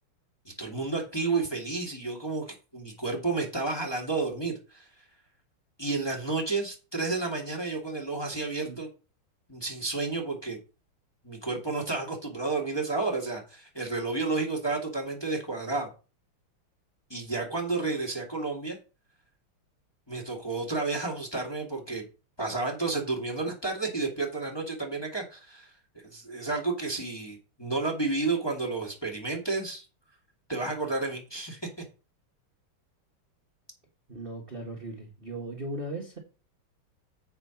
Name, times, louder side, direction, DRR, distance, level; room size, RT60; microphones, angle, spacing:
voice 1, 0.6-5.0 5.8-8.9 9.5-10.6 11.2-15.9 17.1-18.8 20.1-22.0 22.4-29.9 30.5-31.6, right 3 dB, 10° left, 0 dB, 1.8 m, -31 dB
voice 2, 34.1-36.2, right 1 dB, 30° right, 0 dB, 1.4 m, -37 dB
7.7 x 5.2 x 5.8 m, 0.33 s
omnidirectional pair, 2.4 m